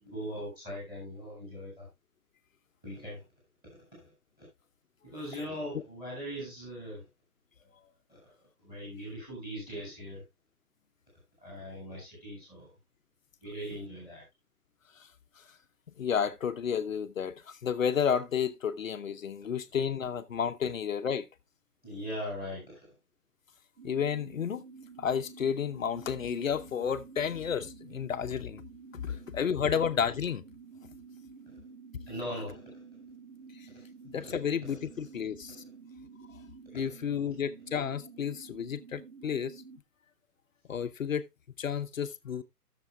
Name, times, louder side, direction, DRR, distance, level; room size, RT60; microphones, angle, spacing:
voice 1, 0.0-1.9 2.8-3.2 3.9-4.0 4.4-4.5 5.1-7.0 7.6-7.7 8.1-8.3 8.6-10.2 11.4-12.7 13.4-14.2 21.8-22.9 29.1-29.2 32.1-32.8 34.3-34.4 37.0-37.6, equal, 10° right, 6.8 m, -40 dB
voice 2, 16.0-21.3 23.8-24.6 25.0-28.6 29.0-30.4 33.6-33.7 34.1-35.6 36.7-39.6 40.7-41.2 41.6-42.4, left 7 dB, 55° left, 0.8 m, -31 dB
sound 1, 23.8-39.8, right 5 dB, 55° right, 2.1 m, -51 dB
17.5 x 6.9 x 2.3 m
hypercardioid pair, 165°, 46 cm